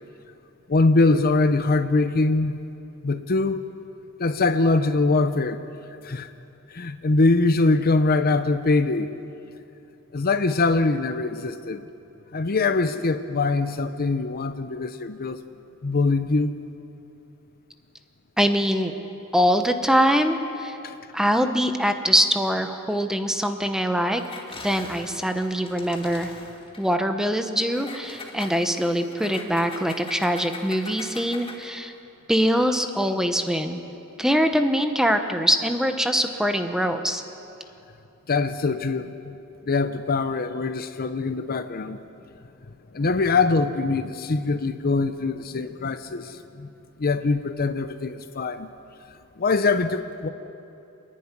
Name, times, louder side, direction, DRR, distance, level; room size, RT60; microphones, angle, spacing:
voice 1, 0.7-2.6 3.0-3.6 4.2-5.6 6.0-6.3 6.7-9.1 10.1-11.9 12.3-15.4 15.8-16.5 20.8-20.9 38.3-39.4 39.7-42.0 42.9-46.7 47.0-48.7 49.4-50.3, left 3 dB, 45° left, 10 dB, 0.7 m, -23 dB
voice 2, 18.4-18.9 19.3-20.8 21.1-24.2 24.6-26.3 26.8-31.9 32.3-33.8 34.2-37.2, equal, 5° right, 7 dB, 1.0 m, -23 dB
Engine, 24.1-26.9 27.7-31.8, left 3 dB, 25° left, 1.9 m, -42 dB
28.0 x 10.5 x 9.8 m, 2.8 s
head